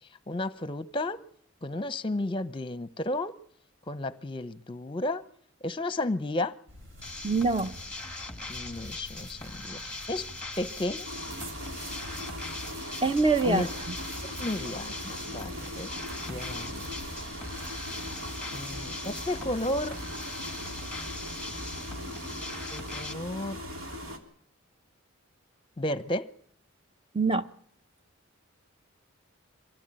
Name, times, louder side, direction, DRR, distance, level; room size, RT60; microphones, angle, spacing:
voice 1, 0.3-1.2 1.6-3.3 3.9-5.2 5.6-6.5 8.5-10.3 10.6-11.1 13.4-13.7 14.2-15.9 16.3-16.9 18.5-20.0 22.7-23.6 25.8-26.3, left 1 dB, 25° left, 0.9 m, -33 dB
sound 1, 6.7-21.7, equal, 60° right, 4.5 m, -48 dB
sound 2, 7.0-23.1, left 3 dB, 5° left, 1.9 m, -41 dB
voice 2, 7.2-7.7 13.0-13.7 27.1-27.5, right 3 dB, 25° right, 1.0 m, -24 dB
sound 3, 11.1-24.2, equal, 80° right, 3.5 m, -40 dB
24.5 x 16.5 x 9.0 m
head